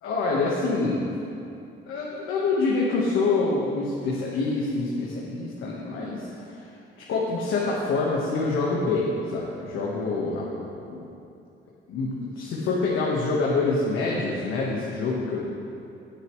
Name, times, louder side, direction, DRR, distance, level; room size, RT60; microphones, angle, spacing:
voice 1, 0.0-1.1 1.9-6.7 7.0-11.0 11.9-15.4, left 3 dB, 85° left, -4 dB, 1.4 m, -26 dB
19.0 x 6.8 x 3.2 m, 2.7 s
cardioid pair, 90°, 20 cm